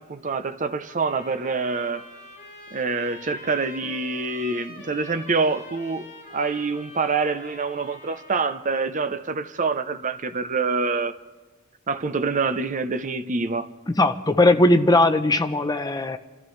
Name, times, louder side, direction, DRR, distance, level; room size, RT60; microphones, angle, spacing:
voice 1, 0.0-2.1 2.7-6.1 6.3-11.1 11.9-13.7, right 4 dB, 35° right, 0.6 m, -26 dB
sound 1, 0.9-8.7, left 2 dB, 35° left, 6.7 m, -45 dB
voice 2, 14.0-16.2, left 2 dB, 15° left, 0.6 m, -19 dB
29.5 x 14.0 x 3.2 m
head